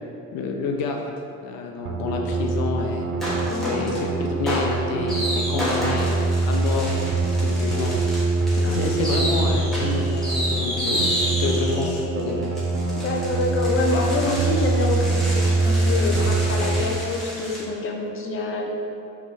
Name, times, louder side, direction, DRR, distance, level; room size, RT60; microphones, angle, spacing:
voice 1, 0.3-1.0 1.4-3.1 3.7-7.9 8.5-12.4, left 4 dB, 90° left, 1 dB, 0.7 m, -29 dB
sound 1, 1.8-16.8, right 3 dB, 40° right, 0.5 m, -24 dB
sound 2, 3.2-4.0 4.5-17.6, equal, ahead, 1.3 m, -30 dB
voice 2, 3.5-3.9 8.6-9.0 11.5-11.6 12.0-12.3 12.9-18.8, left 2 dB, 40° left, 1 dB, 0.8 m, -27 dB
5.8 x 3.1 x 5.5 m, 2.6 s
cardioid pair, 155°, 34 cm